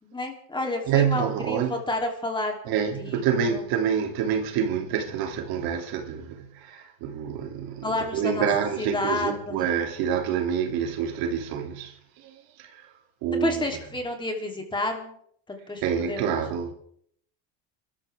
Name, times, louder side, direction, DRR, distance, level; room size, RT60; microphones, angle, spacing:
voice 1, 0.0-3.7 7.8-8.5 8.8-9.7 13.4-15.2 15.5-15.8 16.1-16.4, left 2 dB, 10° left, 3.2 m, -30 dB
voice 2, 0.9-1.8 2.6-12.9 13.2-13.6 15.8-16.7, right 8 dB, 65° right, 2.8 m, -27 dB
26.5 x 13.5 x 3.6 m
cardioid pair, 130°, 39 cm